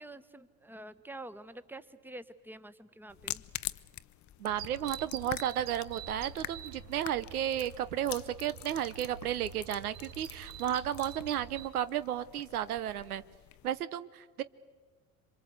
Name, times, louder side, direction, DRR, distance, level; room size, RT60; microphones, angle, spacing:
voice 1, 0.0-3.4, right 1 dB, 5° right, 13 dB, 1.3 m, -47 dB
sound 1, 3.1-13.8, left 14 dB, 40° left, 0.8 m, -45 dB
voice 2, 4.4-13.2 13.6-14.4, right 11 dB, 85° right, 15 dB, 0.9 m, -33 dB
sound 2, 4.5-11.7, right 9 dB, 65° right, 1.4 m, -47 dB
27.0 x 24.5 x 8.2 m, 1.5 s
hypercardioid pair, 70°, 43 cm